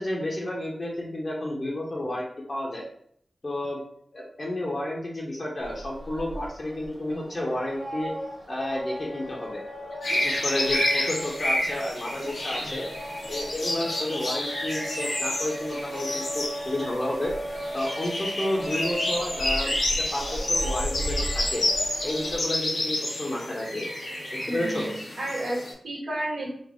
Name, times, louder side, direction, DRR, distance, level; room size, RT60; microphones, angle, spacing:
voice 1, 0.0-2.8 3.4-3.8 4.1-8.1 8.5-9.6 10.1-12.8 13.3-17.3 17.7-21.7 22.0-23.9 24.3-24.9, left 1 dB, 45° left, -3 dB, 0.9 m, -31 dB
sound 1, 5.6-22.4, equal, 40° right, 1.4 m, -36 dB
sound 2, 10.0-25.7, left 1 dB, 90° left, 1.2 m, -30 dB
voice 2, 24.5-26.5, right 1 dB, 80° right, -9 dB, 1.5 m, -32 dB
4.0 x 2.0 x 3.6 m, 0.66 s
wide cardioid pair, 65°, 0 cm